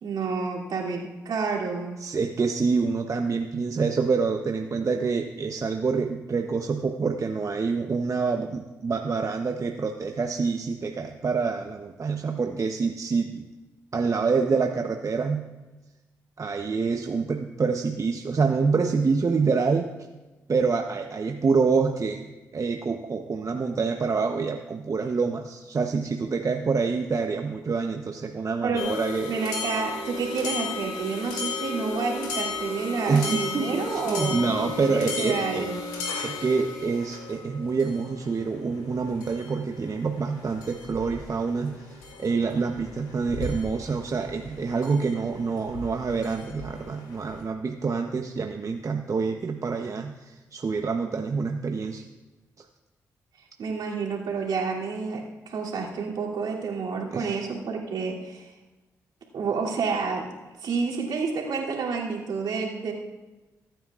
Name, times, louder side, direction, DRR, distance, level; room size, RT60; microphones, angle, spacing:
voice 1, 0.0-2.0 28.6-28.9 29.3-35.8 53.6-58.5 59.3-60.3 60.6-62.9, right 4 dB, 70° right, -3 dB, 2.9 m, -29 dB
voice 2, 2.0-13.4 13.9-15.4 16.4-19.9 20.5-29.3 33.1-35.7 36.2-52.1 52.6-52.7 57.1-57.4, right 4 dB, 45° right, 4 dB, 0.9 m, -27 dB
sound 1, 28.8-47.4, left 3 dB, 80° left, 2.4 m, -35 dB
23.0 x 9.1 x 2.5 m, 1.1 s
hypercardioid pair, 45°, 8 cm